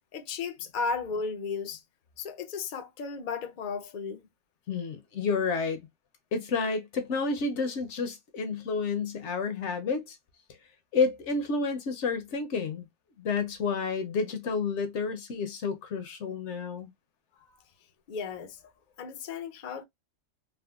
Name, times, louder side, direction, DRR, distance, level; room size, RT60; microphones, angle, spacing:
voice 1, 0.1-1.8 2.2-4.3 17.3-17.6 18.1-18.7 19.0-19.8, left 5 dB, 50° left, 0.6 m, -35 dB
voice 2, 4.7-5.8 6.3-10.2 10.9-12.9 13.2-16.9, left 4 dB, 70° left, 0.9 m, -30 dB
3.5 x 2.1 x 2.3 m
omnidirectional pair, 1.3 m